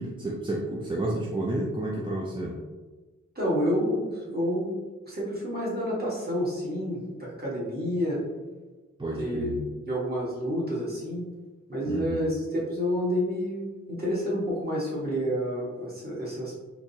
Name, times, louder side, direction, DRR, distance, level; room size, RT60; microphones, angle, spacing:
voice 1, 0.0-2.6 9.0-9.7 11.9-12.2, right 1 dB, 15° right, -4 dB, 0.4 m, -31 dB
voice 2, 3.3-4.8 5.0-8.2 9.1-11.3 11.7-16.5, equal, 30° right, -7 dB, 1.5 m, -29 dB
3.7 x 2.9 x 2.7 m, 1.2 s
wide cardioid pair, 95°, 30 cm